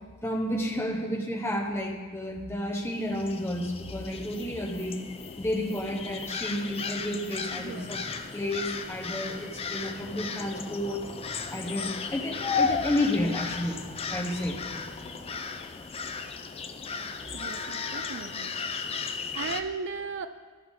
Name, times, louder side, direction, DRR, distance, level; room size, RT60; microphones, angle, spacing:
voice 1, 0.2-4.9 5.4-8.0 8.3-11.0 11.5-14.6, left 1 dB, 10° left, 1 dB, 1.0 m, -31 dB
sound 1, 2.8-19.6, left 5 dB, 25° left, 0.4 m, -35 dB
sound 2, 7.5-15.4, right 1 dB, 20° right, 1.2 m, -49 dB
voice 2, 7.6-7.9 17.3-18.5 19.1-20.3, right 5 dB, 55° right, 10 dB, 0.4 m, -37 dB
13.0 x 5.9 x 3.7 m, 1.5 s
head